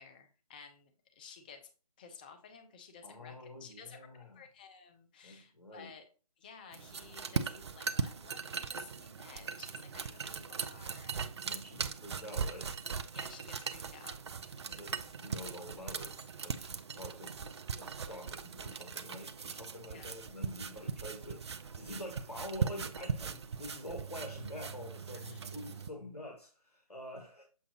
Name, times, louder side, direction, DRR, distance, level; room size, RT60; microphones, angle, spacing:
voice 1, 0.0-1.7 2.0-6.1 6.4-11.3 13.1-14.5 19.9-20.2 25.1-25.6, left 6 dB, 15° left, 0.4 m, -54 dB
voice 2, 3.0-4.4 5.2-5.9 11.4-12.7 14.7-21.5 21.7-27.4, left 1 dB, 85° left, 1.3 m, -47 dB
sound 1, 6.7-25.9, right 6 dB, 45° right, 0.5 m, -39 dB
7.1 x 4.9 x 2.9 m
figure-of-eight pair, 150°, 19 cm